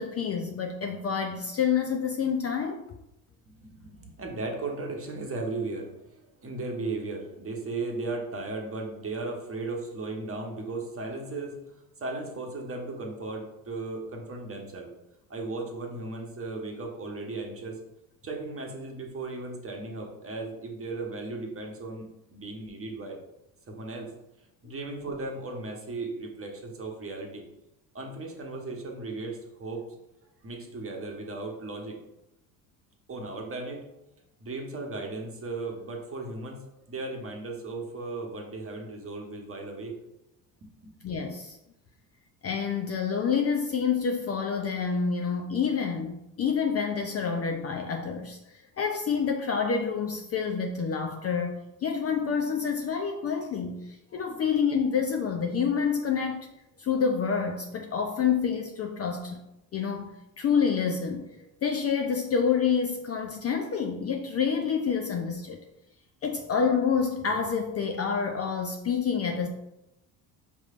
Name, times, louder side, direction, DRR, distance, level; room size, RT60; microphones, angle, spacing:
voice 1, 0.0-2.8 41.0-41.6 42.4-48.4 48.8-56.5 56.8-59.4 59.7-60.1 60.4-61.3 61.6-65.6 66.2-69.5, left 6 dB, 35° left, 4 dB, 0.5 m, -28 dB
voice 2, 3.5-11.6 12.0-14.9 15.3-17.8 18.2-23.2 23.7-24.1 24.6-27.4 27.9-29.8 30.4-32.0 33.1-33.9 34.4-36.6 36.9-40.0 40.6-40.9, right 3 dB, 30° right, 1 dB, 1.0 m, -36 dB
5.3 x 3.2 x 2.5 m, 0.90 s
hypercardioid pair, 65°, 47 cm